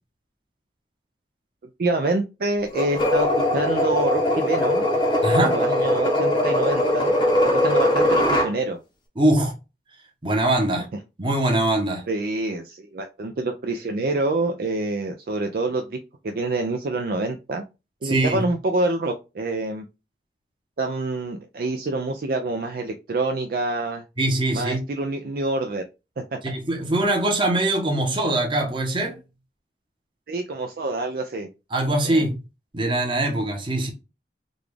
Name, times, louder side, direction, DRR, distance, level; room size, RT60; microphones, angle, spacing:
voice 1, 1.8-4.9 5.5-7.1 7.6-8.8 12.1-16.0 16.2-17.6 18.0-19.9 20.8-24.0 24.5-25.8 26.5-26.6 30.3-31.5 32.0-32.2, right 2 dB, 55° right, 0.4 m, -26 dB
sound 1, 2.7-8.5, left 1 dB, 30° left, 0.7 m, -21 dB
voice 2, 5.2-5.6 9.2-9.5 10.2-10.9 11.2-12.0 18.0-18.5 24.2-24.8 26.4-29.2 31.7-32.4 32.7-33.9, right 1 dB, 30° right, 0.9 m, -22 dB
3.8 x 2.3 x 3.2 m
head